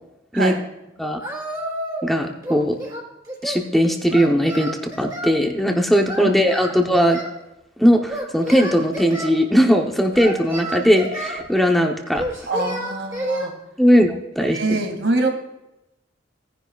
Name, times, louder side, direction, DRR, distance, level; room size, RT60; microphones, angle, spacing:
Singing, 1.2-2.1 2.4-3.6 4.1-5.4 6.1-7.4 8.1-9.3 10.1-11.4 12.2-13.5, right 1 dB, 20° right, 3.2 m, -30 dB
voice 1, 2.0-2.8 3.4-7.2 7.8-12.2 13.8-14.8, equal, ahead, 2 dB, 0.8 m, -18 dB
voice 2, 12.5-13.5 14.5-15.3, right 2 dB, 80° right, 3 dB, 2.4 m, -24 dB
17.5 x 10.5 x 2.4 m, 0.92 s
head